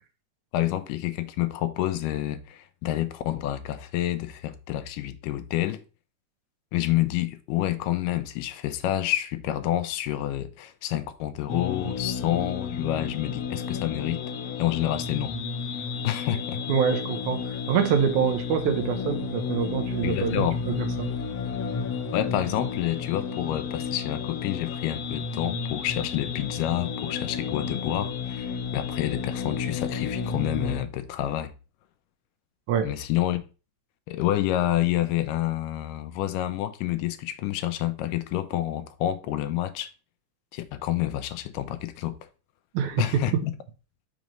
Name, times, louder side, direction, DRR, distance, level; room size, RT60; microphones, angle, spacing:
voice 1, 0.5-5.8 6.7-14.2 14.6-15.3 16.0-16.6 20.0-20.6 22.1-31.5 32.8-33.4 34.1-39.9 40.5-42.2 43.0-43.5, left 13 dB, 85° left, 2.2 m, -28 dB
sound 1, 11.5-30.8, left 6 dB, 70° left, 1.6 m, -32 dB
voice 2, 16.7-21.1 32.7-32.9 42.7-43.2, right 7 dB, 75° right, 2.0 m, -25 dB
6.1 x 3.1 x 5.1 m
omnidirectional pair, 3.7 m